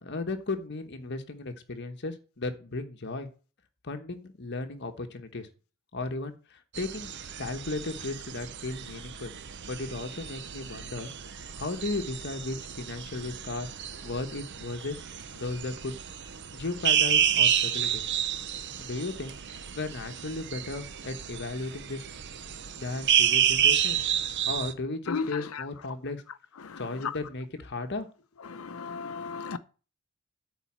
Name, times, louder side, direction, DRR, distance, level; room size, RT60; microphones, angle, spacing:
voice 1, 0.0-3.3 3.8-5.5 5.9-7.1 7.4-9.3 9.7-13.7 14.0-15.0 15.3-16.0 16.5-18.0 18.8-19.4 19.7-22.0 22.8-24.1 24.5-26.2 26.8-28.1, left 3 dB, 50° left, 1.1 m, -35 dB
sound 1, 6.7-24.7, right 9 dB, 55° right, 0.8 m, -30 dB
voice 2, 25.1-25.6 26.6-27.2 28.4-29.6, left 5 dB, 75° left, 0.6 m, -35 dB
9.2 x 4.2 x 7.3 m
head